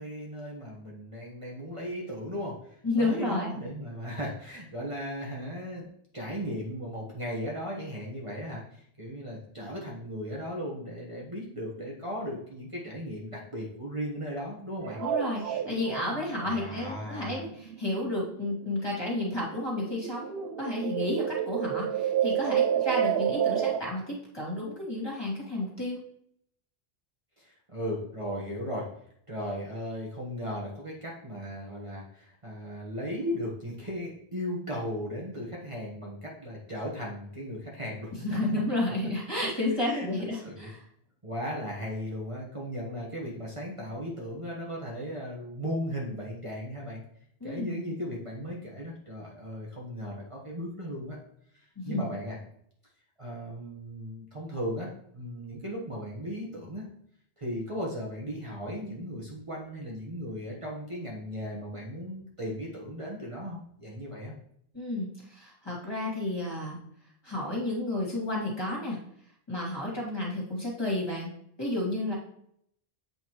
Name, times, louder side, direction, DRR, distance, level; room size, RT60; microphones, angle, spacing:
voice 1, 0.0-5.9 6.1-15.0 15.4-15.5 16.4-17.4 27.4-28.9 29.3-38.1 39.8-40.1 40.4-40.7 41.2-47.0 47.4-51.2 51.5-52.4 53.2-56.9 57.4-64.3, equal, 30° right, -4 dB, 1.3 m, -36 dB
voice 2, 2.8-3.6 15.0-26.0 38.2-40.8 47.4-47.8 51.8-52.1 64.7-66.8 67.2-69.0 69.5-71.3 71.6-72.2, left 2 dB, 25° left, -4 dB, 2.4 m, -31 dB
sound 1, 14.8-18.9 19.2-23.8, right 10 dB, 75° right, 0.8 m, -30 dB
8.2 x 5.4 x 3.0 m, 0.69 s
omnidirectional pair, 1.0 m